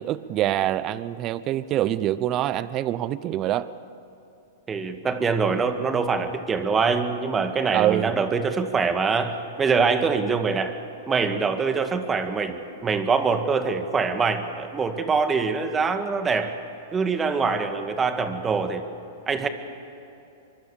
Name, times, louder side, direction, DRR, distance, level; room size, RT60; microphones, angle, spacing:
voice 1, 0.0-3.7 7.7-8.1, right 13 dB, 35° right, 17 dB, 0.8 m, -25 dB
voice 2, 4.7-10.8 11.1-16.5 16.9-18.8 19.3-19.5, right 5 dB, 20° right, 8 dB, 1.9 m, -24 dB
24.0 x 23.5 x 7.1 m, 2.9 s
hypercardioid pair, 120°, 0 cm